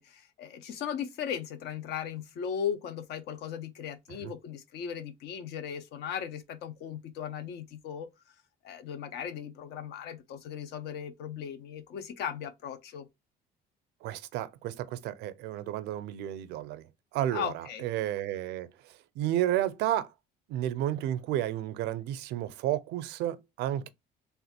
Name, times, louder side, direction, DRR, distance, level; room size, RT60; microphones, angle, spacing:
voice 1, 0.0-8.1 8.6-13.1 17.3-17.9, left 8 dB, 80° left, 0.8 m, -37 dB
voice 2, 14.0-16.9 17.1-20.1 20.5-23.9, right 12 dB, 90° right, 0.5 m, -32 dB
3.4 x 2.5 x 4.2 m
cardioid pair, 110°, 17 cm